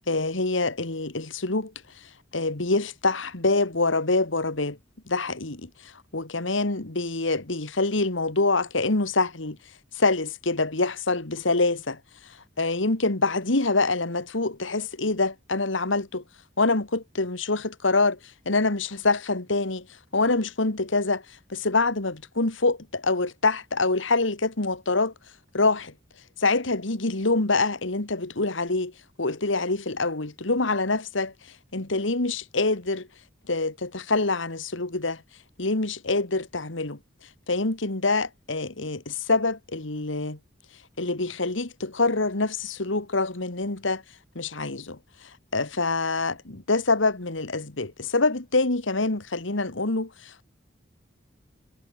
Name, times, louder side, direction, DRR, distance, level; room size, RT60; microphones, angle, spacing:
voice 1, 0.0-1.7 2.3-4.8 5.1-5.7 6.1-9.6 10.0-12.0 12.6-16.2 16.6-18.2 18.5-19.9 20.1-21.2 21.5-25.1 25.5-25.9 26.4-28.9 29.2-31.3 31.7-33.1 33.5-35.2 35.6-37.0 37.5-40.4 41.0-44.0 44.4-45.0 45.5-50.4, left 3 dB, 80° left, 2.1 m, -25 dB
head